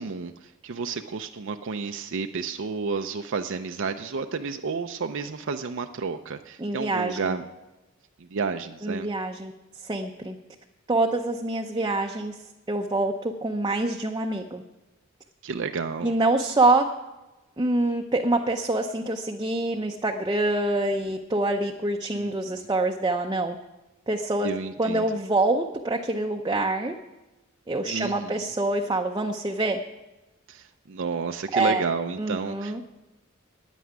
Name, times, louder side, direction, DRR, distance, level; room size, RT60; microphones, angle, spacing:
voice 1, 0.0-7.4 8.2-9.1 15.4-16.1 22.1-22.7 24.4-25.2 27.8-28.5 30.5-32.9, right 5 dB, 60° right, 6 dB, 0.5 m, -31 dB
voice 2, 6.6-7.4 8.8-9.5 9.8-10.4 10.9-12.4 12.7-14.6 16.0-16.9 17.6-23.6 24.1-24.5 24.8-27.0 27.7-29.8 31.5-31.8 32.2-32.8, right 2 dB, 20° right, 2 dB, 0.6 m, -25 dB
9.4 x 9.1 x 9.6 m, 1.1 s
head